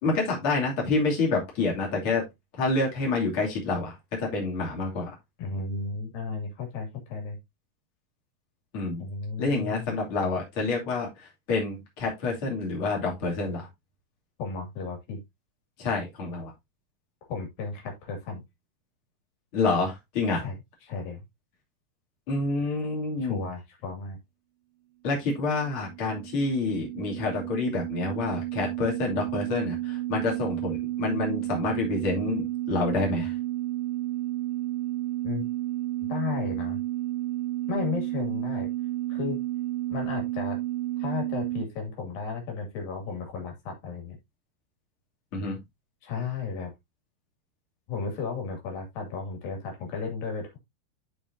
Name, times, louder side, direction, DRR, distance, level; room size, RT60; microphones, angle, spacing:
voice 1, 0.0-2.2 2.6-5.1 8.7-9.0 9.4-11.1 11.5-13.7 15.8-16.5 19.5-20.4 22.3-23.5 25.0-33.3 45.3-45.6, left 3 dB, 40° left, -1 dB, 3.4 m, -28 dB
voice 2, 5.4-7.4 9.0-9.9 14.4-15.2 17.3-18.4 20.3-20.6 20.8-21.2 23.2-24.2 35.2-35.5 36.0-36.8 37.7-38.7 39.1-39.4 39.9-40.6 41.0-44.2 46.0-46.7 47.9-50.6, left 5 dB, 85° left, 2 dB, 4.2 m, -34 dB
sound 1, 25.5-41.6, right 16 dB, 85° right, 2.6 m, -31 dB
12.5 x 4.9 x 2.7 m, 0.19 s
omnidirectional pair, 4.0 m